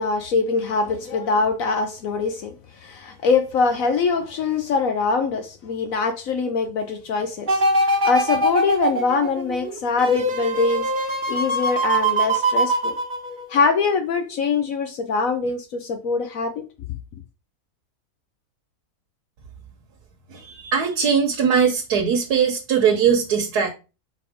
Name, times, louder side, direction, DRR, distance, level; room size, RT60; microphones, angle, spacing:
voice 1, 0.0-10.9 11.3-12.9 13.5-16.7, left 4 dB, 65° left, 1.0 m, -23 dB
sound 1, 7.5-13.7 14.2-14.3, right 1 dB, 35° right, 1.2 m, -22 dB
voice 2, 20.3-23.7, right 7 dB, 90° right, 1.5 m, -20 dB
4.4 x 4.2 x 5.0 m
omnidirectional pair, 1.6 m